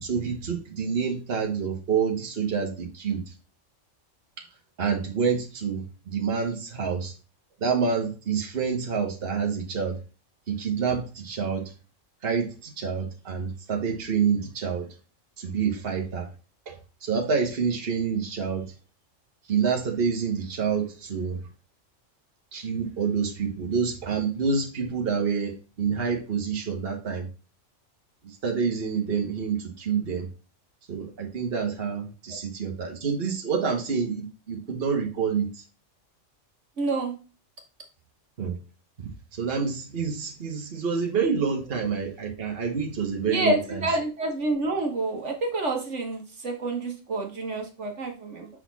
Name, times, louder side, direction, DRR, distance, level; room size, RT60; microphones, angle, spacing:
voice 1, 0.0-3.2 4.8-7.1 7.6-10.0 10.5-11.7 12.2-14.9 15.4-16.3 16.7-18.7 19.5-21.4 22.5-27.3 28.2-30.3 30.9-35.6 38.4-38.6 39.0-43.8, right 6 dB, 50° right, 1 dB, 1.4 m, -27 dB
voice 2, 36.8-37.1 43.3-48.5, right 2 dB, 65° right, 3 dB, 1.6 m, -28 dB
6.1 x 4.2 x 4.0 m, 0.32 s
omnidirectional pair, 1.3 m